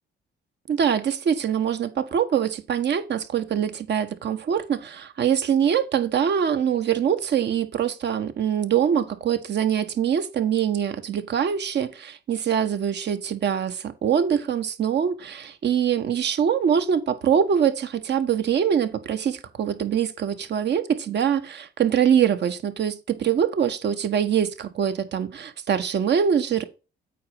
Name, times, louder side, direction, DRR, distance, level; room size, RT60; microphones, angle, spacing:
voice 1, 0.7-26.6, right 8 dB, 60° right, 1.4 m, -23 dB
8.5 x 5.2 x 4.8 m
cardioid pair, 90°, 20 cm